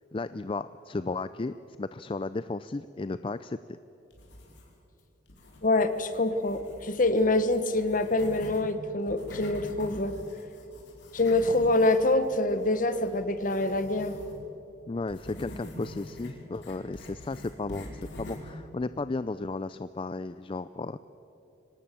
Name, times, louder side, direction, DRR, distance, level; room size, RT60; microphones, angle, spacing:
voice 1, 0.1-3.6 14.9-21.0, left 3 dB, 30° left, 13 dB, 0.4 m, -34 dB
pencil on paper scribble, 4.1-4.9 5.3-8.6 9.0-14.4 15.1-18.6, left 1 dB, 65° left, 4.8 m, -45 dB
voice 2, 5.6-10.2 11.1-14.2, left 2 dB, 45° left, 11 dB, 1.3 m, -25 dB
25.0 x 18.5 x 7.6 m, 2.9 s
head